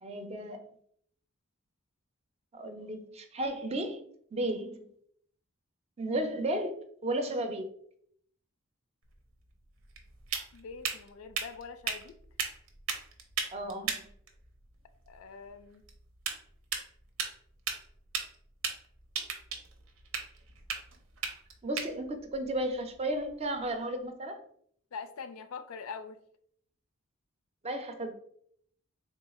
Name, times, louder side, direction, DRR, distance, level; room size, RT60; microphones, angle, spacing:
voice 1, 0.0-0.6 2.5-4.0 4.3-4.9 6.0-6.7 7.0-7.6 13.5-14.1 21.6-24.4 27.6-28.1, right 1 dB, 30° right, 0.5 m, -33 dB
sound 1, 9.0-23.7, right 6 dB, 80° right, 0.7 m, -39 dB
voice 2, 10.5-12.2 15.1-15.8 24.9-26.2, left 5 dB, 85° left, 0.4 m, -43 dB
3.6 x 2.3 x 4.1 m
head